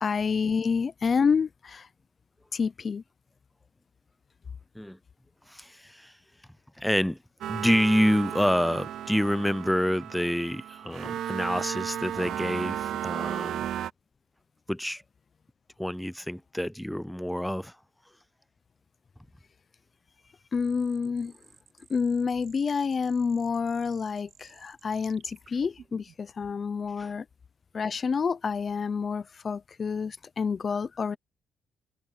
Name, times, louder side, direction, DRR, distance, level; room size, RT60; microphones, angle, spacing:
voice 1, 0.0-1.9 2.5-3.0 20.5-21.3 21.9-27.3 27.7-31.2, left 5 dB, 40° left, 0.7 m, -28 dB
voice 2, 5.5-6.1 6.8-7.2 7.5-13.7 14.7-15.0 15.8-17.8 27.0-27.1, equal, 5° left, 0.5 m, -27 dB
sound 1, 7.4-13.9, right 11 dB, 75° right, 0.4 m, -34 dB
sound 2, 20.5-26.4, right 7 dB, 60° right, 3.0 m, -57 dB
cardioid pair, 90°, 0 cm